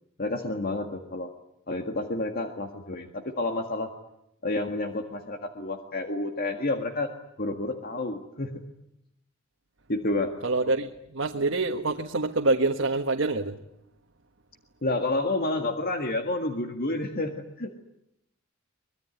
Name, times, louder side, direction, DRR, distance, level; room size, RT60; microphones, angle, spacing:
voice 1, 0.2-1.3 1.7-3.9 4.4-7.1 7.4-8.6 9.9-10.4 14.8-17.7, left 2 dB, 50° left, 5 dB, 1.8 m, -29 dB
voice 2, 10.4-13.5, right 3 dB, 70° right, 3 dB, 1.5 m, -26 dB
24.0 x 21.5 x 9.5 m, 0.81 s
head